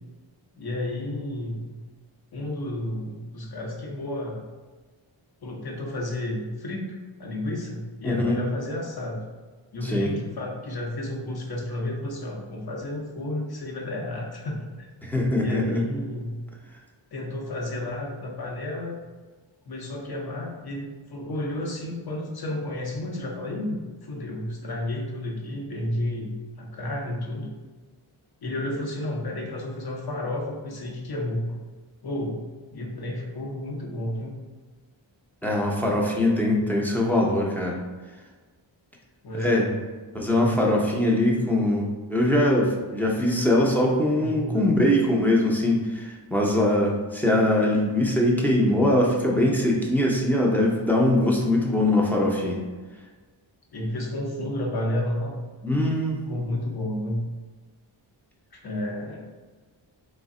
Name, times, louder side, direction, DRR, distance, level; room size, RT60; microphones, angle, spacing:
voice 1, 0.6-1.8 2.3-4.4 5.4-9.2 9.7-14.9 15.3-16.4 17.1-19.0 19.7-27.5 28.4-31.6 32.0-32.4 32.7-34.3 39.2-39.7 40.3-40.7 44.2-44.7 53.7-55.4 56.3-57.3 58.5-59.2, left 1 dB, 50° left, 0 dB, 0.8 m, -31 dB
voice 2, 8.0-8.4 9.8-10.1 15.1-15.8 35.4-37.8 39.3-39.7 40.1-52.6 55.6-56.2, left 1 dB, 5° left, -2 dB, 0.5 m, -22 dB
3.3 x 2.1 x 3.7 m, 1.3 s
wide cardioid pair, 85°, 48 cm